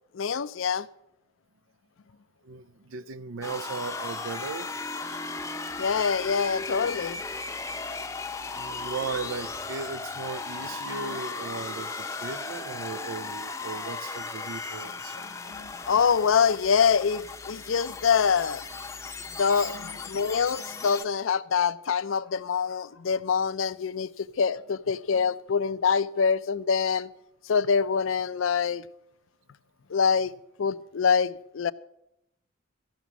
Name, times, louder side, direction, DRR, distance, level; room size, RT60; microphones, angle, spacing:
voice 1, 0.1-0.9 5.8-7.2 10.9-11.2 15.2-18.6 19.4-27.1 27.4-28.8 29.9-30.3 30.6-31.7, left 6 dB, 75° left, 0.5 m, -25 dB
voice 2, 2.4-4.7 8.5-15.2 19.6-19.7, right 5 dB, 80° right, 0.5 m, -37 dB
sound 1, 3.4-21.1, left 4 dB, 15° left, 0.6 m, -36 dB
14.0 x 6.1 x 8.2 m
head